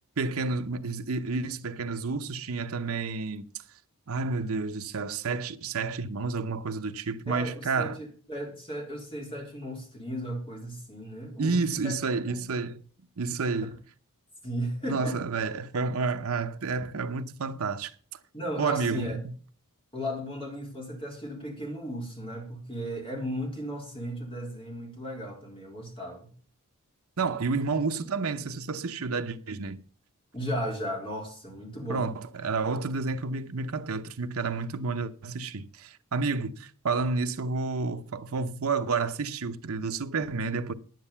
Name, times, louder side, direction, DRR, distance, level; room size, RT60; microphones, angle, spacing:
voice 1, 0.2-3.5 4.1-8.0 11.4-12.8 13.2-13.8 14.9-17.9 18.6-19.3 27.2-29.8 31.9-40.7, right 4 dB, 70° right, 0.8 m, -30 dB
voice 2, 7.3-11.9 12.2-12.4 14.4-15.2 18.3-19.2 19.9-26.3 30.3-32.1, equal, 25° left, 3.9 m, -35 dB
9.9 x 9.3 x 5.7 m
head